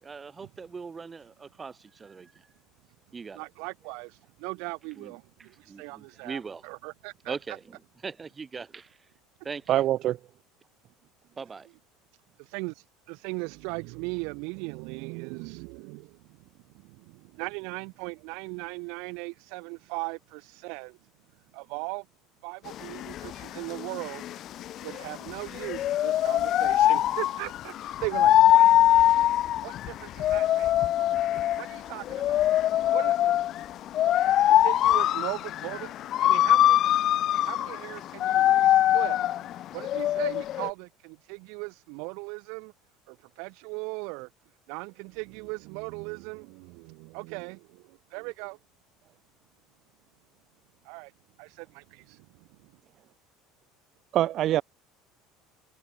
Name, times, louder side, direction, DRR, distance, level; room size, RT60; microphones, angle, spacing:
voice 1, 0.0-2.5 3.1-3.4 5.0-5.1 5.7-6.6 7.3-9.0 9.4-9.8 11.4-11.7, right 5 dB, 15° right, 4.3 m, -40 dB
voice 2, 3.3-7.4 12.4-16.4 16.7-21.0 21.5-22.0 22.4-24.2 24.8-28.7 29.6-30.7 31.5-32.5 32.9-33.4 34.2-35.9 36.2-36.8 37.4-39.2 39.7-42.7 43.1-44.3 44.7-48.6 50.8-51.1 51.4-52.7, right 32 dB, 70° right, 1.6 m, -38 dB
voice 3, 9.7-10.2 54.1-54.6, right 13 dB, 40° right, 0.8 m, -24 dB
sound 1, 22.7-40.7, left 12 dB, 40° left, 0.5 m, -23 dB
cardioid pair, 160°, 0 cm